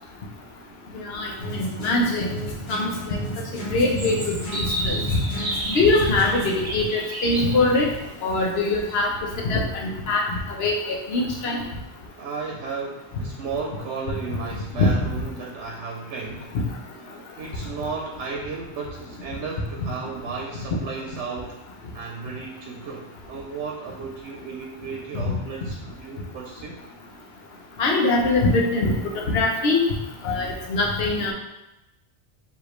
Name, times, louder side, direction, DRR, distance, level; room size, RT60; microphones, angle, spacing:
voice 1, 0.9-2.3 2.7-3.2 3.5-5.2 5.7-7.9 8.2-9.1 9.5-11.6 14.7-14.9 19.8-19.9 25.1-25.3 27.8-28.9 29.3-29.8 30.2-31.3, left 2 dB, 65° left, -1 dB, 0.9 m, -23 dB
sound 1, 1.4-6.6, equal, 85° left, 1.3 m, -33 dB
sound 2, 4.0-9.0, right 1 dB, 25° right, 0.6 m, -32 dB
voice 2, 12.2-16.5 17.4-21.6 21.9-26.8, right 4 dB, 90° right, 0 dB, 0.9 m, -34 dB
4.9 x 2.9 x 3.1 m, 0.98 s
omnidirectional pair, 1.2 m